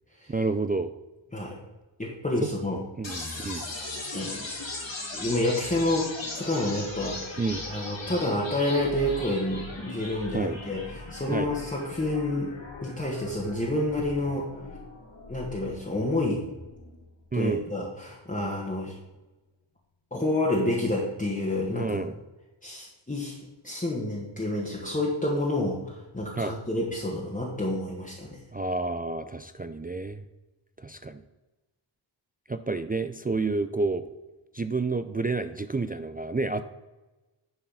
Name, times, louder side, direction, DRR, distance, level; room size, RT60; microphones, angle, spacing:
voice 1, 0.3-0.9 3.0-3.6 7.4-7.6 10.3-10.6 11.3-11.5 17.3-17.6 21.7-22.1 26.3-26.5 28.5-30.2 30.8-31.2 32.5-34.0 34.5-36.6, right 3 dB, 20° right, 9 dB, 0.3 m, -29 dB
voice 2, 2.0-2.8 4.1-4.4 5.1-6.1 6.3-7.4 7.7-12.5 12.8-14.5 15.3-16.4 17.3-19.0 20.1-22.0 22.6-23.4 23.6-28.4, left 1 dB, 15° left, -4 dB, 1.5 m, -29 dB
sound 1, 3.0-17.0, left 2 dB, 70° left, 2.9 m, -39 dB
10.5 x 4.5 x 5.6 m, 1.1 s
wide cardioid pair, 70°, 47 cm